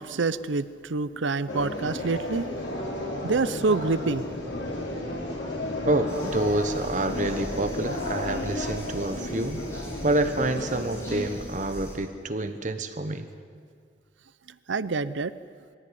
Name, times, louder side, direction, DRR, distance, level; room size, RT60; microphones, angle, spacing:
voice 1, 0.0-4.2 14.7-15.3, right 3 dB, 85° right, 15 dB, 0.7 m, -27 dB
sound 1, 1.5-11.3, left 1 dB, 80° left, 4.9 m, -33 dB
voice 2, 5.9-9.6 10.0-13.3, right 2 dB, 45° right, 9 dB, 1.3 m, -27 dB
sound 2, 6.1-12.0, equal, 15° left, 5.9 m, -43 dB
22.5 x 16.0 x 10.0 m, 2.2 s
head